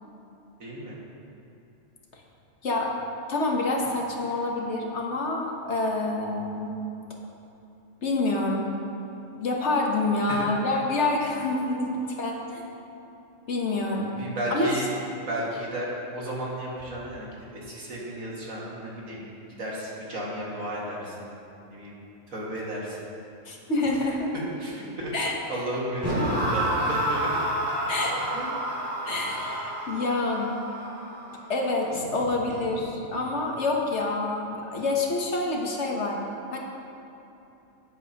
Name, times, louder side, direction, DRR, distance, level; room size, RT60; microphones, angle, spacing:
voice 1, 0.6-1.0 10.3-10.5 14.2-14.9 15.3-19.3 19.6-21.3 21.7-22.0 22.3-23.1 24.3-25.1 25.5-27.3 28.3-28.6, right 1 dB, 80° right, -5 dB, 2.3 m, -33 dB
voice 2, 2.6-2.9 3.3-6.8 8.0-8.7 9.4-12.6 13.5-14.2 14.5-14.7 23.4-24.3 25.1-25.3 27.9-28.2 29.0-30.6 31.5-36.2 36.5-36.6, left 2 dB, 60° left, 0 dB, 1.4 m, -27 dB
sound 1, 26.0-33.1, right 1 dB, 20° right, 2.5 m, -30 dB
13.5 x 9.1 x 2.9 m, 3.0 s
omnidirectional pair, 1.4 m